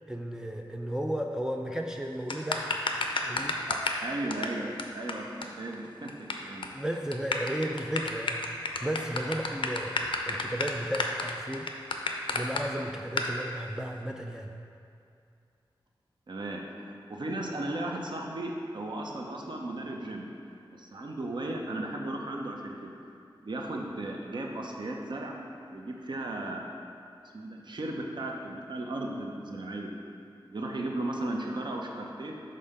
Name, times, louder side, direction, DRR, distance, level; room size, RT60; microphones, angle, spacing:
voice 1, 0.1-2.8 3.2-3.6 6.7-10.0 10.3-11.7 12.3-14.5, right 1 dB, 5° right, 2 dB, 0.3 m, -34 dB
sound 1, 2.3-4.0 4.3-4.5 4.8-4.9 5.1-5.2 5.4-5.5 5.7-6.3 6.6-6.8 7.1-12.6 13.2-13.3, left 3 dB, 70° left, 0.5 m, -30 dB
voice 2, 3.7-6.7 16.3-20.3 20.7-22.9 23.4-25.3 25.7-26.6 27.3-29.9 30.5-32.4, right 1 dB, 55° right, 0 dB, 0.7 m, -36 dB
5.4 x 3.8 x 5.4 m, 2.5 s
wide cardioid pair, 80°, 9 cm